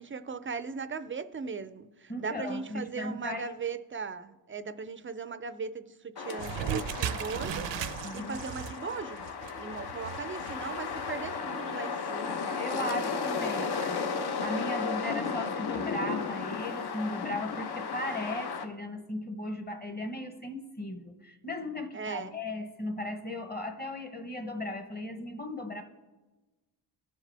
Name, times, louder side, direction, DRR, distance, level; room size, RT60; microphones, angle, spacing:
voice 1, 0.0-9.2 9.6-13.3 13.6-13.9 21.9-22.3, right 5 dB, 30° right, 0.4 m, -39 dB
voice 2, 2.1-3.5 8.0-8.4 12.6-13.9 14.4-25.8, left 1 dB, 20° left, 1.0 m, -36 dB
sound 1, 6.2-18.7, left 5 dB, 65° left, 0.9 m, -35 dB
sound 2, 6.4-11.4, right 9 dB, 85° right, 0.6 m, -37 dB
19.5 x 7.4 x 3.4 m
wide cardioid pair, 145°, 43 cm